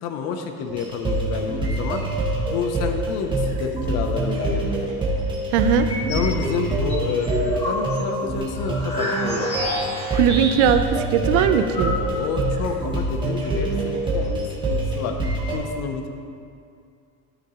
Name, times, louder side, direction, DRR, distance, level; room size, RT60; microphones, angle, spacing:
voice 1, 0.0-2.2 2.5-4.9 6.1-9.9 12.0-16.1, left 6 dB, 50° left, 5 dB, 0.7 m, -29 dB
sound 1, 0.7-15.6, right 2 dB, 15° right, 1.4 m, -25 dB
voice 2, 5.5-5.9 10.1-12.0, right 8 dB, 85° right, 8 dB, 0.7 m, -19 dB
sound 2, 5.7-6.3 6.7-10.9 11.1-11.2 11.4-12.4, equal, 20° left, 2.1 m, -29 dB
13.5 x 5.9 x 3.0 m, 2.4 s
cardioid pair, 165°, 34 cm